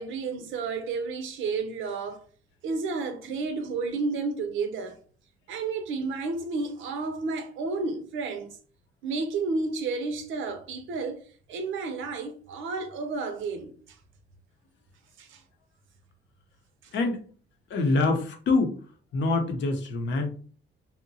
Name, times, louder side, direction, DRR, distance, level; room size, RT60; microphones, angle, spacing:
voice 1, 0.0-2.2 2.6-5.0 5.5-8.6 9.0-11.2 11.5-14.0 15.2-15.4, right 4 dB, 75° right, 0.6 m, -31 dB
voice 2, 16.9-17.2 17.7-18.8 19.1-20.3, left 3 dB, 70° left, 0.7 m, -25 dB
2.8 x 2.1 x 2.6 m
cardioid pair, 90°, 20 cm